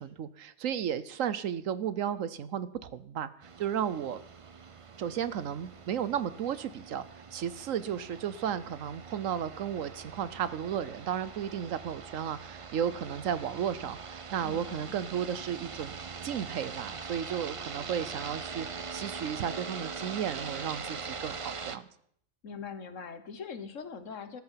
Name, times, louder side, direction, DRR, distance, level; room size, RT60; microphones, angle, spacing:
voice 1, 0.0-4.2 5.0-16.0 16.2-21.8, right 9 dB, 70° right, 15 dB, 1.1 m, -34 dB
sound 1, 3.4-21.8, right 5 dB, 45° right, 0.4 m, -42 dB
voice 2, 14.4-14.9 22.4-24.4, left 5 dB, 60° left, 11 dB, 1.5 m, -42 dB
13.5 x 13.5 x 5.7 m, 0.66 s
omnidirectional pair, 1.5 m